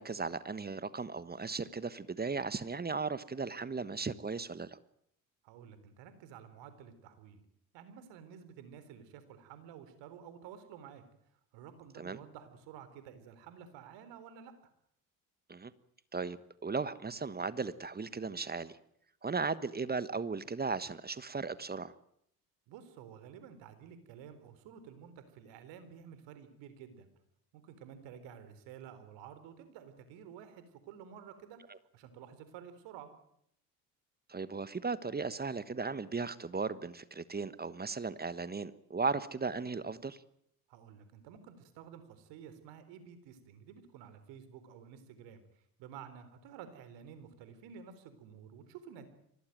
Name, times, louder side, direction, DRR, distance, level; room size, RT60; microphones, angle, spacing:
voice 1, 0.0-4.8 12.0-12.2 15.5-15.7 16.1-16.4 16.6-18.8 19.2-21.9 34.3-40.2, right 4 dB, 20° right, 16 dB, 1.3 m, -36 dB
voice 2, 5.4-7.4 7.7-11.0 11.5-14.5 22.7-27.1 27.5-33.1 40.7-49.1, right 8 dB, 65° right, 11 dB, 4.0 m, -51 dB
24.5 x 18.0 x 9.3 m, 0.71 s
hypercardioid pair, 65°, 46 cm